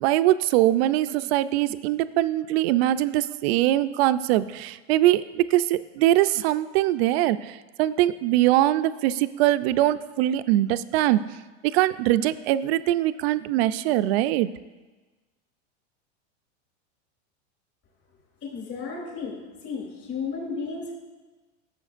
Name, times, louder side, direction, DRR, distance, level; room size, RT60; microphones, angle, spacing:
voice 1, 0.0-11.2 11.6-14.5, right 14 dB, 55° right, 13 dB, 0.4 m, -22 dB
voice 2, 18.4-19.4 19.6-20.9, left 5 dB, 35° left, -3 dB, 3.2 m, -33 dB
14.5 x 6.9 x 2.5 m, 1.2 s
supercardioid pair, 135°, 37 cm